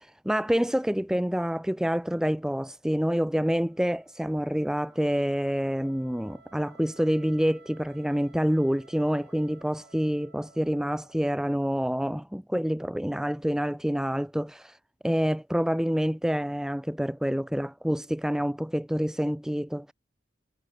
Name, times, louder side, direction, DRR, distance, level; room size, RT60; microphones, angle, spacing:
voice 1, 0.2-14.8 15.0-19.9, equal, 5° right, 0.5 m, -27 dB
Wind instrument woodwind instrument, 3.5-11.5, right 4 dB, 65° right, 3.0 m, -58 dB
head